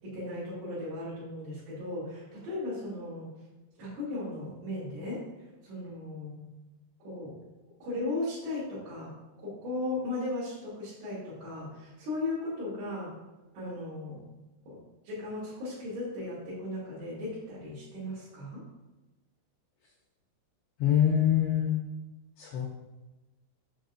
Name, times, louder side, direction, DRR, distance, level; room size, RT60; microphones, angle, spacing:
voice 1, 0.0-3.3 3.8-5.2 5.6-6.5 7.0-7.3 7.8-13.1 13.5-14.2 14.7-18.6, left 2 dB, 65° right, -12 dB, 4.8 m, -36 dB
voice 2, 20.8-21.7 22.4-22.7, left 10 dB, 85° left, -2 dB, 2.3 m, -24 dB
8.8 x 6.8 x 2.6 m, 1.1 s
omnidirectional pair, 5.9 m